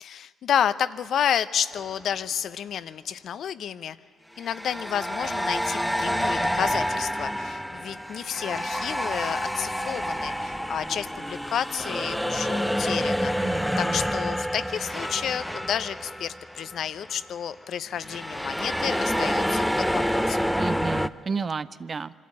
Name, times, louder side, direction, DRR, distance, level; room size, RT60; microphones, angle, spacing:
voice 1, 0.0-4.0 4.4-20.5, left 9 dB, 70° left, 14 dB, 0.6 m, -30 dB
sound 1, 1.7-2.0 4.4-16.8 17.0-17.3 18.0-21.1, equal, ahead, 0.6 m, -28 dB
voice 2, 13.4-14.0 20.6-22.1, right 4 dB, 45° right, 14 dB, 0.6 m, -31 dB
24.5 x 12.5 x 8.6 m, 2.2 s
supercardioid pair, 60°, 0 cm